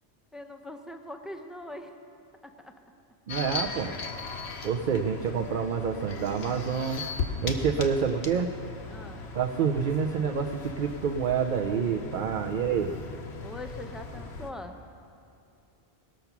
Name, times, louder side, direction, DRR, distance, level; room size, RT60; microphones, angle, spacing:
voice 1, 0.3-1.9 2.4-2.7 8.9-9.2 13.4-14.8, left 1 dB, ahead, 5 dB, 0.4 m, -42 dB
sound 1, 3.3-14.5, left 4 dB, 70° left, 1.1 m, -38 dB
voice 2, 3.3-3.9 4.6-7.0 7.4-8.5 9.3-12.9, right 6 dB, 55° right, 3 dB, 0.6 m, -28 dB
19.5 x 6.9 x 5.9 m, 2.6 s
omnidirectional pair, 1.1 m